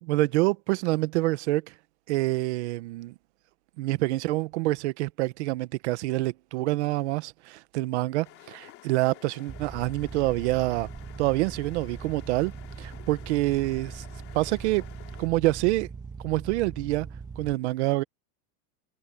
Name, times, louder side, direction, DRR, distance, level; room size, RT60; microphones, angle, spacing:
voice 1, 0.0-1.7 2.1-3.1 3.8-10.9 11.2-12.5 12.8-14.0 14.3-14.9 15.2-15.9 16.2-17.1 17.4-18.0, right 19 dB, 45° right, 1.1 m, -26 dB
sound 1, 8.2-15.3, left 16 dB, 30° left, 2.9 m, -51 dB
sound 2, 9.5-17.5, right 5 dB, 10° right, 2.5 m, -41 dB
supercardioid pair, 180°, 46 cm